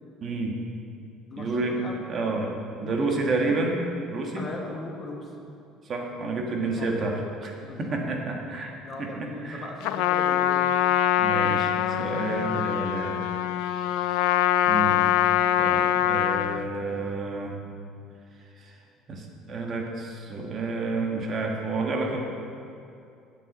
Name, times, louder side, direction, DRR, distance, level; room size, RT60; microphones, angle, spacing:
voice 1, 0.2-0.5 1.4-2.5 2.8-3.8 4.1-4.5 5.8-8.7 9.0-9.7 11.2-13.2 13.6-14.4 14.6-15.0 15.6-17.5 18.6-18.8 19.1-22.2, right 3 dB, 35° right, 1 dB, 1.4 m, -30 dB
voice 2, 1.3-2.0 2.8-3.7 4.3-5.4 6.2-6.3 6.6-6.9 7.6-8.0 8.8-10.7, left 2 dB, 30° left, 1 dB, 1.3 m, -39 dB
Trumpet, 9.8-16.7, left 12 dB, 85° left, 0.3 m, -23 dB
14.0 x 8.4 x 4.1 m, 2.6 s
cardioid pair, 150°, 0 cm